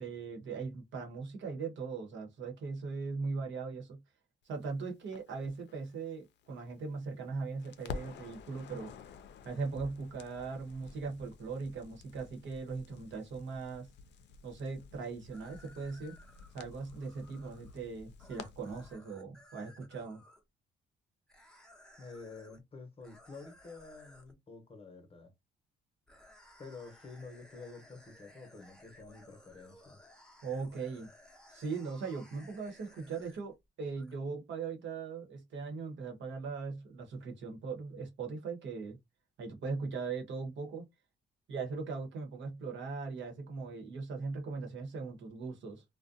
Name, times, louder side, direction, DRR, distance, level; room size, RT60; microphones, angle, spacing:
voice 1, 0.0-4.0 4.4-8.9 9.4-13.9 14.4-16.1 16.5-20.2 30.4-31.1 31.5-39.0 39.4-40.9 41.5-45.8, right 4 dB, 70° right, 1.0 m, -39 dB
Crackle, 5.1-7.3 7.6-18.9, left 5 dB, 65° left, 0.5 m, -50 dB
sound 1, 15.3-20.4 21.3-22.6 23.0-24.3 26.1-33.6 34.0-34.1, left 1 dB, 5° left, 0.7 m, -59 dB
voice 2, 22.0-25.3 26.6-30.0, left 4 dB, 30° left, 0.9 m, -49 dB
2.4 x 2.1 x 2.5 m
cardioid pair, 90°, 20 cm